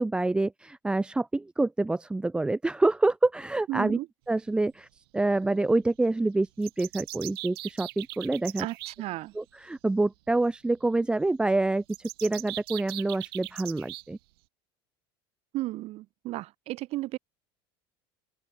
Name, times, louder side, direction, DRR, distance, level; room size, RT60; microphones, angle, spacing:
voice 1, 0.0-4.0 4.3-4.9 5.1-8.7 9.4-14.2, right 2 dB, 5° right, 0.4 m, -27 dB
voice 2, 3.7-4.1 8.6-9.3 15.5-17.2, right 17 dB, 55° right, 4.6 m, -34 dB
sound 1, 6.6-9.0 11.9-14.0, right 20 dB, 85° right, 1.6 m, -39 dB
open air
supercardioid pair, 105°, 12 cm